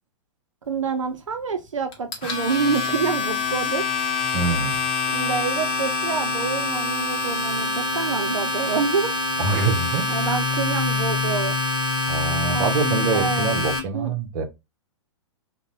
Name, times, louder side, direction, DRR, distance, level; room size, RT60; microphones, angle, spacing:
voice 1, 0.6-3.9 5.1-9.2 10.1-11.5 12.5-13.5 13.9-14.1, right 5 dB, 80° right, 0.4 m, -27 dB
Domestic sounds home sounds, 1.9-13.8, left 3 dB, 30° left, 0.9 m, -25 dB
voice 2, 4.3-4.8 9.4-10.1 12.1-14.4, right 4 dB, 45° right, 0.6 m, -25 dB
2.5 x 2.1 x 2.9 m
figure-of-eight pair, 110°, 16 cm